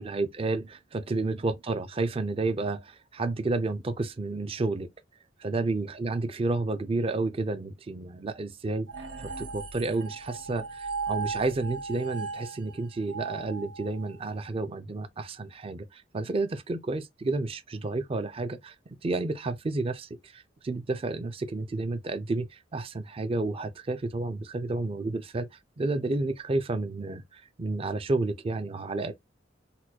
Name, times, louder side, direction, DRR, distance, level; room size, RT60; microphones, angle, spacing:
voice 1, 0.0-4.9 5.4-8.9 9.2-18.7 19.0-25.5 25.8-29.1, right 3 dB, 30° right, 0.4 m, -31 dB
sound 1, 8.9-14.3, right 4 dB, 85° right, 1.0 m, -37 dB
4.1 x 2.2 x 2.7 m
head